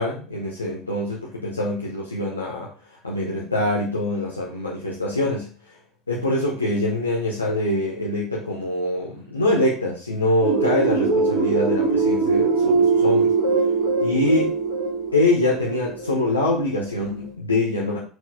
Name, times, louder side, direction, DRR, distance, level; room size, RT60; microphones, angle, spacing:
voice 1, 0.0-2.7 3.0-5.5 6.1-13.3 14.0-14.6 15.1-18.0, left 1 dB, 90° left, -4 dB, 1.2 m, -24 dB
sound 1, 10.4-17.0, right 4 dB, 60° right, 3.0 m, -22 dB
6.9 x 4.3 x 4.1 m, 0.38 s
figure-of-eight pair, 70°, 0 cm